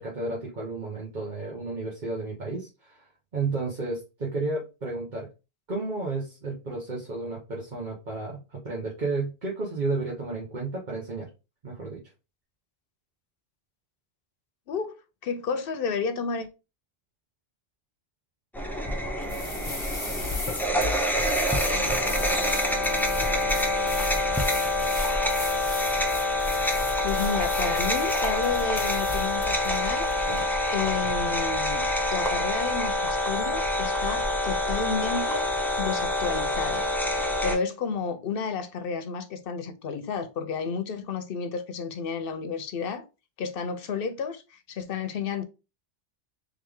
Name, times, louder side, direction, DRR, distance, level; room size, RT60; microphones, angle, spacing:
voice 1, 0.0-3.0 3.3-5.3 5.7-11.3 11.6-12.0, right 3 dB, 50° right, 1.2 m, -32 dB
voice 2, 14.7-16.5 27.0-30.0 30.7-31.8 32.1-35.5 35.8-36.8 37.4-43.0 43.4-45.4, left 5 dB, 65° left, 0.8 m, -31 dB
sound 1, 18.5-37.6, left 1 dB, ahead, 0.6 m, -26 dB
sound 2, 19.2-30.4, left 3 dB, 30° left, 0.9 m, -37 dB
3.5 x 3.3 x 3.6 m
omnidirectional pair, 1.0 m